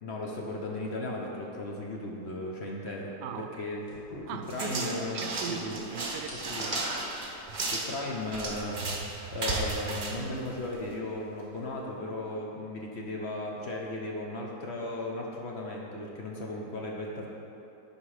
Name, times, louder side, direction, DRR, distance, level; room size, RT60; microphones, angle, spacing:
voice 1, 0.0-3.1 3.5-3.9 4.5-5.2 5.5-5.7 6.5-6.6 7.7-9.0 9.3-17.3, left 2 dB, 45° left, -2 dB, 1.0 m, -36 dB
voice 2, 3.2-3.7 4.3-6.9, right 7 dB, 90° right, 8 dB, 1.2 m, -39 dB
sound 1, 3.9-4.9 5.2-5.5 5.8-7.9, equal, 75° left, 2.1 m, -43 dB
sound 2, 4.5-11.0, right 3 dB, 35° right, 0.8 m, -35 dB
11.0 x 4.6 x 4.9 m, 2.9 s
omnidirectional pair, 1.8 m